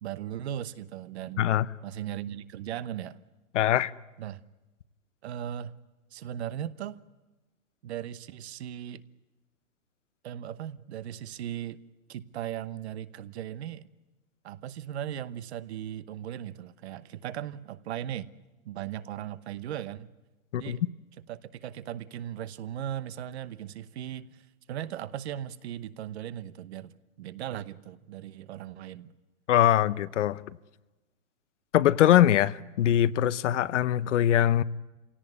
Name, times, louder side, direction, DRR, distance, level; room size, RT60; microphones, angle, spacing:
voice 1, 0.0-1.5 1.8-3.2 4.2-4.4 5.2-5.7 6.1-7.0 7.8-9.0 10.2-11.8 12.1-13.9 14.4-18.3 18.6-20.1 20.5-20.8 21.3-29.1, right 11 dB, 50° right, 1.0 m, -38 dB
voice 2, 3.5-3.9 20.5-20.8 29.5-30.4 31.7-34.6, left 11 dB, 60° left, 0.8 m, -22 dB
27.0 x 17.5 x 9.5 m
hypercardioid pair, 155°, 41 cm